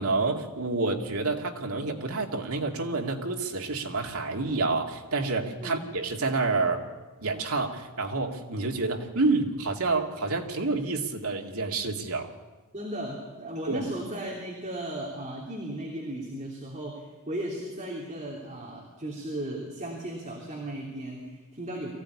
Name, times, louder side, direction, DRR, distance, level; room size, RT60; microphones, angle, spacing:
voice 1, 0.0-6.8 7.2-12.3 13.7-13.8, right 3 dB, 70° right, 3 dB, 2.4 m, -28 dB
voice 2, 12.7-21.9, right 1 dB, 30° right, -1 dB, 3.2 m, -36 dB
23.0 x 16.0 x 9.7 m, 1.2 s
head